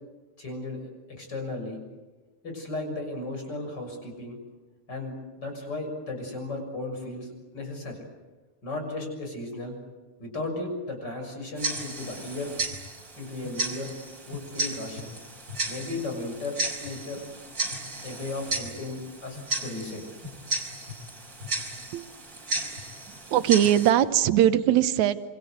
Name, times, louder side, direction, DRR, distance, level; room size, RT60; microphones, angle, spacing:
voice 1, 0.4-1.8 2.4-4.4 4.9-8.0 8.6-9.8 10.2-12.5 13.2-14.0 14.3-15.1 15.7-17.2 18.0-20.0, left 2 dB, 35° left, 4 dB, 7.2 m, -35 dB
Tick-tock, 11.6-23.9, right 2 dB, 30° right, 4.1 m, -34 dB
voice 2, 23.3-25.2, right 11 dB, 75° right, 11 dB, 2.4 m, -20 dB
27.0 x 26.0 x 8.1 m, 1.3 s
omnidirectional pair, 3.4 m